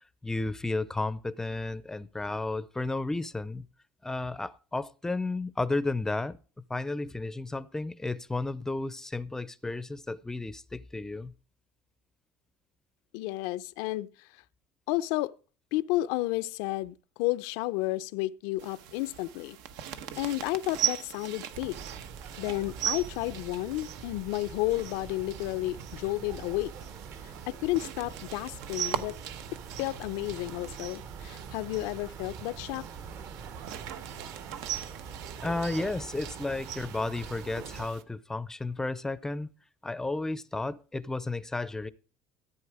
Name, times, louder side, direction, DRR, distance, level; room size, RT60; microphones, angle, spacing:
voice 1, 0.2-3.7 4.0-6.4 6.7-11.3 35.4-39.5 39.8-41.9, left 2 dB, 5° left, 0.5 m, -33 dB
voice 2, 13.1-14.3 14.9-15.3 15.7-19.6 20.2-21.8 22.4-26.7 27.5-29.2 29.5-32.9, left 18 dB, 85° left, 0.6 m, -32 dB
sound 1, 18.6-38.0, right 10 dB, 85° right, 1.1 m, -40 dB
sound 2, 21.5-37.9, right 6 dB, 45° right, 0.9 m, -44 dB
14.0 x 8.7 x 4.8 m
cardioid pair, 160°, 7 cm